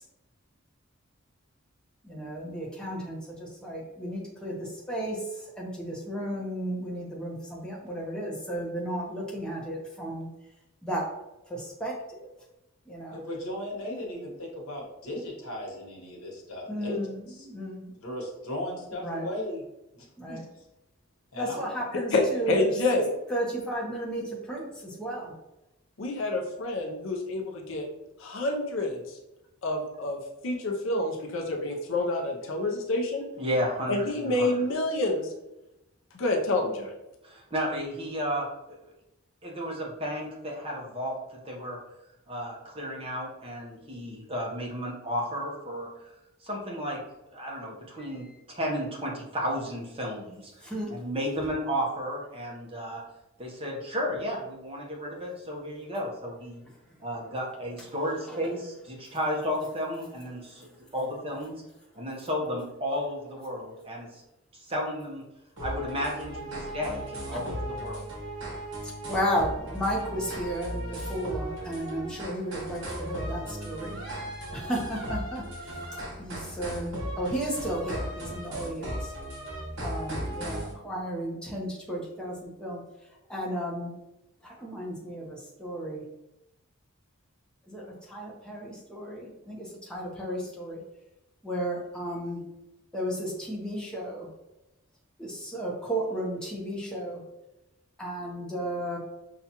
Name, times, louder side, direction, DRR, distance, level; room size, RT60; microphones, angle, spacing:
voice 1, 2.0-10.3 10.8-11.1 11.4-12.3 12.9-13.2 16.7-17.9 19.0-19.3 20.2-20.4 21.4-22.7 23.3-25.3 48.0-48.3 50.6-50.9 58.3-58.4 60.5-60.7 66.8-66.9 67.3-67.4 68.8-79.1 79.8-82.8 83.3-83.9 84.4-86.0 87.7-90.8 91.4-92.4 92.9-94.3 95.2-97.2 98.0-99.0, right 1 dB, 5° left, -4 dB, 0.8 m, -34 dB
voice 2, 13.1-17.0 17.3-17.5 18.0-19.6 19.9-20.4 21.3-21.6, left 1 dB, 85° left, -1 dB, 1.1 m, -36 dB
voice 3, 21.9-23.1 26.0-27.8 28.2-29.2 29.6-30.2 30.4-33.2 33.9-35.3 36.1-36.9, left 2 dB, 60° left, 2 dB, 0.5 m, -28 dB
voice 4, 33.4-34.6 37.2-38.8 39.4-41.8 42.3-46.1 46.4-47.0 47.3-53.0 53.4-56.6 57.0-61.5 62.0-64.2 64.5-65.2 65.6-68.1, equal, 25° right, -2 dB, 0.8 m, -33 dB
sound 1, 65.6-80.7, right 1 dB, 55° right, 1.4 m, -36 dB
5.6 x 2.3 x 2.8 m, 0.92 s
head